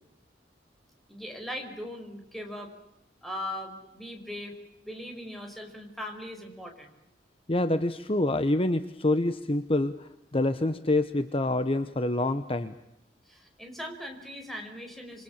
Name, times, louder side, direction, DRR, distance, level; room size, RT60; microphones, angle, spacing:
voice 1, 1.1-2.7 3.2-4.6 4.8-7.0 13.3-15.2, left 1 dB, ahead, 3 dB, 5.1 m, -39 dB
voice 2, 7.5-12.7, left 2 dB, 30° left, 11 dB, 1.0 m, -26 dB
27.5 x 24.5 x 7.3 m, 0.87 s
head